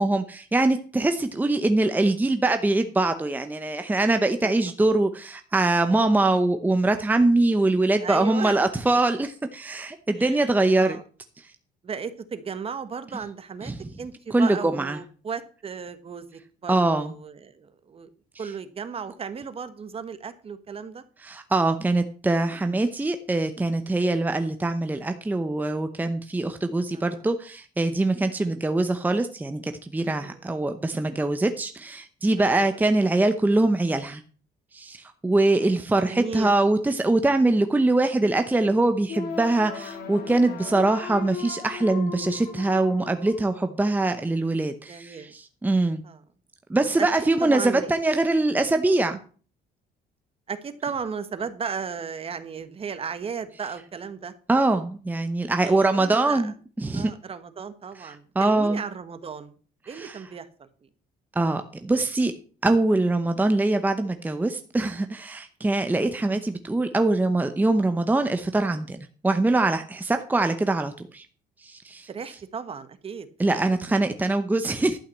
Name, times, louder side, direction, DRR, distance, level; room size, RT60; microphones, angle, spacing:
voice 1, 0.0-11.0 13.6-13.8 14.3-15.0 16.7-17.1 21.2-34.2 34.7-46.0 46.7-49.1 54.5-57.1 58.0-58.8 59.9-60.2 61.4-62.3 62.6-69.0 69.2-71.3 71.6-72.1 73.4-75.0, right 2 dB, 10° right, 8 dB, 0.8 m, -23 dB
voice 2, 8.0-8.6 10.1-11.0 11.8-13.7 14.0-18.1 18.4-21.0 22.6-22.8 26.9-27.2 30.2-30.5 32.4-32.8 35.7-35.8 36.1-36.5 44.9-45.3 46.0-46.2 47.0-47.9 49.1-49.2 50.5-54.3 55.6-56.5 56.9-59.5 59.9-60.9 66.3-66.5 72.1-73.3, right 6 dB, 35° right, 12 dB, 1.2 m, -35 dB
sound 1, 39.1-44.1, left 7 dB, 70° left, 2.8 m, -37 dB
11.5 x 5.8 x 7.2 m, 0.42 s
cardioid pair, 110°, 17 cm